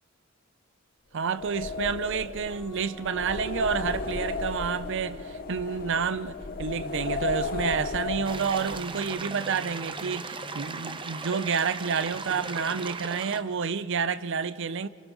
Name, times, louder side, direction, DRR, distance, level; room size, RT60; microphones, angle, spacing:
voice 1, 1.1-14.9, right 6 dB, 60° right, 0.6 m, -29 dB
sound 1, 1.3-8.8, left 3 dB, 45° left, 0.9 m, -34 dB
sound 2, 2.5-6.1 7.6-11.3 12.1-13.4, right 1 dB, 20° left, 3.6 m, -46 dB
sound 3, 8.2-13.4, right 4 dB, 25° right, 0.7 m, -37 dB
27.5 x 25.5 x 4.0 m
head